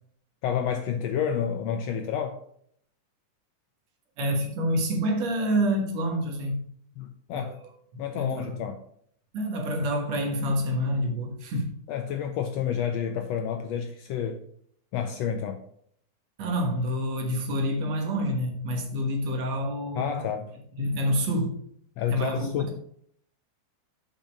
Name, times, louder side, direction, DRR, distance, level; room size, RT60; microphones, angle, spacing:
voice 1, 0.4-2.4 7.0-7.6 8.0-8.8 11.9-14.4 14.9-15.6 19.9-20.5 22.0-22.7, left 8 dB, 80° left, 1.5 m, -29 dB
voice 2, 4.2-6.7 7.3-7.6 8.1-8.7 9.3-11.7 16.4-20.1 20.8-21.6 22.1-22.8, equal, 65° right, 2.4 m, -27 dB
7.2 x 5.6 x 5.1 m
omnidirectional pair, 3.5 m